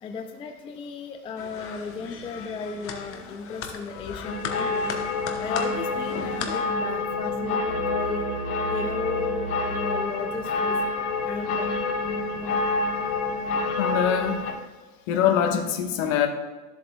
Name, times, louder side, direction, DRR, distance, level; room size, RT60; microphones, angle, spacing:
voice 1, 0.0-4.9 5.4-8.3 8.7-10.8 11.2-11.7 12.4-12.5, left 4 dB, 15° left, 5 dB, 0.4 m, -35 dB
sound 1, 1.4-6.7, left 6 dB, 30° left, 1.0 m, -37 dB
sound 2, 4.2-14.5, left 3 dB, 80° left, 1.6 m, -28 dB
sound 3, 7.7-10.6, right 5 dB, 40° right, 1.4 m, -36 dB
voice 2, 13.8-14.4 15.1-16.3, left 9 dB, 60° left, 5 dB, 1.4 m, -23 dB
13.0 x 7.8 x 2.3 m, 1.3 s
hypercardioid pair, 120°, 44 cm